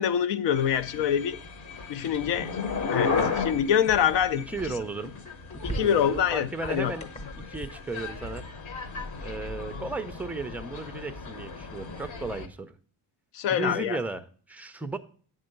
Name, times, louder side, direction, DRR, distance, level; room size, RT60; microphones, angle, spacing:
voice 1, 0.0-1.4 1.9-2.6 2.9-4.4 5.6-6.9 13.3-14.0, left 9 dB, 75° left, 0.7 m, -25 dB
sound 1, 0.5-12.5, left 5 dB, 45° left, 0.9 m, -35 dB
sound 2, 2.2-8.4, right 1 dB, 15° left, 0.8 m, -43 dB
voice 2, 4.4-5.2 5.5-7.1 7.4-8.5 9.2-12.8 13.5-15.0, right 3 dB, 5° right, 0.3 m, -35 dB
8.8 x 3.8 x 6.5 m
cardioid pair, 145°, 43 cm